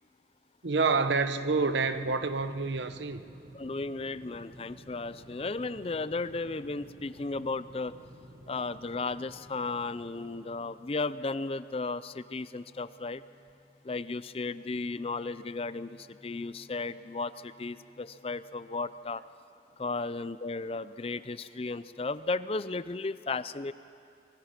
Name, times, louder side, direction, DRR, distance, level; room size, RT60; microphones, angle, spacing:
voice 1, 0.6-3.2, right 4 dB, 85° right, 1.0 m, -28 dB
sound 1, 0.9-19.1, left 1 dB, ahead, 3.7 m, -63 dB
sound 2, 1.5-11.3, right 1 dB, 50° right, 1.4 m, -53 dB
voice 2, 3.5-7.9 8.5-13.2 13.8-19.2 19.8-23.7, left 3 dB, 35° left, 0.5 m, -35 dB
26.0 x 21.5 x 5.9 m
head